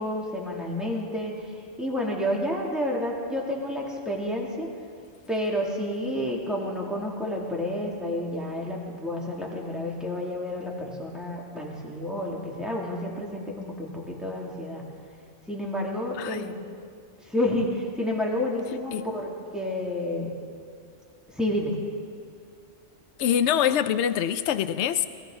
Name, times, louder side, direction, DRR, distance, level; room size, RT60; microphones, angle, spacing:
voice 1, 0.0-1.3 1.8-4.7 5.3-14.8 15.5-16.5 17.3-20.3 21.3-21.8, left 1 dB, ahead, -3 dB, 2.5 m, -30 dB
voice 2, 16.1-16.5 18.9-19.1 23.2-25.1, left 9 dB, 70° left, 12 dB, 0.9 m, -24 dB
21.0 x 14.5 x 3.9 m, 2.2 s
omnidirectional pair, 1.2 m